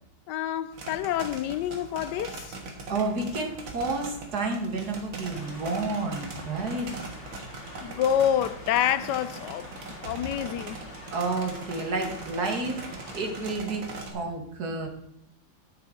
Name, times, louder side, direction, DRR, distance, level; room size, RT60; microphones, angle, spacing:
voice 1, 0.3-2.6 7.8-9.7 10.0-10.8, left 10 dB, 75° left, 1.1 m, -27 dB
sound 1, 0.7-14.1, right 3 dB, 75° right, 2.3 m, -41 dB
voice 2, 2.9-6.9 11.1-14.9, right 3 dB, 50° right, 2.1 m, -30 dB
sound 2, 5.3-13.5, left 1 dB, 30° left, 2.6 m, -45 dB
10.0 x 8.8 x 3.8 m
omnidirectional pair, 2.2 m